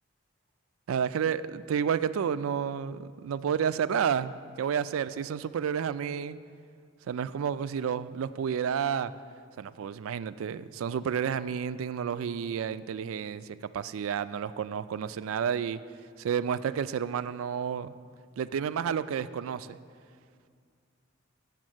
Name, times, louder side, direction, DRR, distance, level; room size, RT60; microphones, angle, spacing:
voice 1, 0.9-4.3 4.6-6.4 7.1-9.1 9.6-15.8 16.2-17.9 18.4-19.8, right 7 dB, 90° right, 15 dB, 0.3 m, -30 dB
7.4 x 7.2 x 7.7 m, 2.2 s
head